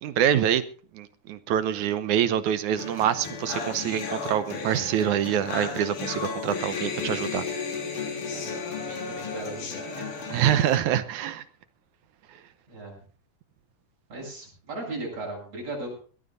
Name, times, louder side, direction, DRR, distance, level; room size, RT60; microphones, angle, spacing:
voice 1, 0.0-0.6 0.9-7.5 10.3-11.4, right 10 dB, 75° right, 13 dB, 2.2 m, -25 dB
sound 1, 2.8-10.8, left 5 dB, 75° left, 4.4 m, -34 dB
voice 2, 8.8-10.1 12.7-12.9 14.1-15.9, right 2 dB, 50° right, -2 dB, 8.9 m, -37 dB
22.0 x 17.0 x 2.6 m, 0.40 s
omnidirectional pair, 3.7 m